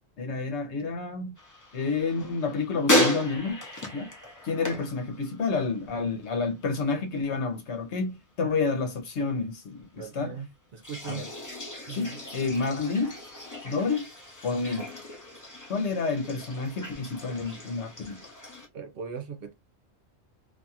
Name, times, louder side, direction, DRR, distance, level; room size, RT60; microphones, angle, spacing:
voice 1, 0.2-1.3 1.7-3.6 3.9-4.1 4.4-10.4 11.1-11.3 11.9-13.2 13.6-14.0 14.4-14.9 15.7-18.3, left 4 dB, 85° left, 1.1 m, -29 dB
sound 1, 1.4-5.8 6.1-6.6 10.8-18.7, left 1 dB, 20° left, 0.5 m, -33 dB
voice 2, 10.0-11.3 11.9-12.1 18.7-19.5, right 6 dB, 60° right, 0.8 m, -39 dB
2.5 x 2.4 x 2.7 m
omnidirectional pair, 1.1 m